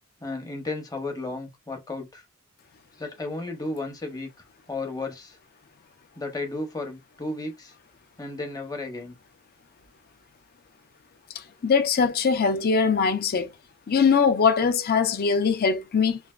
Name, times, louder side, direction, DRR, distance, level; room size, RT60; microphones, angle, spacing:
voice 1, 0.2-2.2 3.0-4.3 4.7-5.4 6.2-7.7 8.2-9.2, left 2 dB, 20° left, 0.8 m, -33 dB
voice 2, 11.6-13.5 13.9-16.2, left 5 dB, 45° left, 0.5 m, -21 dB
3.2 x 2.5 x 2.3 m
head